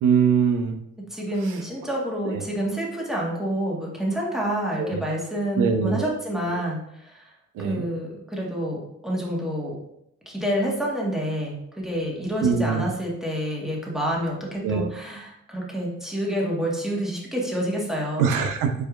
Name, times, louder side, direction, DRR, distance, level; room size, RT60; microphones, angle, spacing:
voice 1, 0.0-0.8 1.4-1.6 2.2-2.4 4.8-5.0 5.6-6.1 7.6-7.9 12.4-12.9 14.6-14.9 18.2-18.7, right 6 dB, 85° right, 5 dB, 0.6 m, -22 dB
voice 2, 1.0-7.2 7.6-9.8 10.2-18.2, equal, ahead, -3 dB, 1.4 m, -28 dB
4.8 x 4.4 x 2.4 m, 0.77 s
cardioid pair, 90°, 30 cm